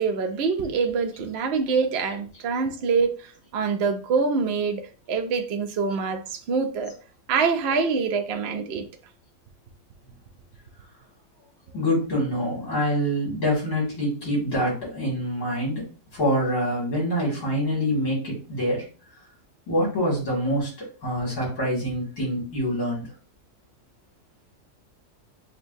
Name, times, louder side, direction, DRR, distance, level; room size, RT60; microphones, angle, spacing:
voice 1, 0.0-6.9 7.3-8.9, right 5 dB, 65° right, 0.6 m, -25 dB
voice 2, 11.7-15.9 16.1-18.8 19.7-20.7 21.0-23.1, equal, 75° left, 2.7 m, -25 dB
6.5 x 2.2 x 2.6 m
omnidirectional pair, 1.7 m